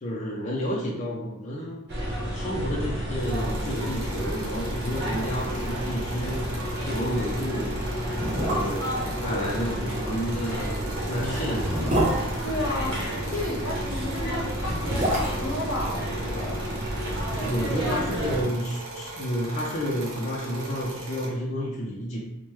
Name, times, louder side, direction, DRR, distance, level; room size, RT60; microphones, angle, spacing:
voice 1, 0.0-1.9 2.3-6.6 6.9-7.9 8.2-11.9 17.4-22.2, equal, 35° left, -4 dB, 0.4 m, -31 dB
sound 1, 1.9-18.4, equal, 50° right, 0.9 m, -31 dB
sound 2, 3.2-21.3, right 2 dB, 80° right, 0.8 m, -39 dB
sound 3, 5.0-5.7 5.9-6.0 6.4-6.6 7.3-7.4 8.1-9.0 10.5-13.2 14.4-16.7 16.9-17.0, equal, 35° right, 0.7 m, -28 dB
voice 2, 12.4-16.7 17.8-18.0, left 1 dB, 75° left, -1 dB, 0.7 m, -33 dB
3.0 x 2.1 x 3.1 m, 0.87 s
head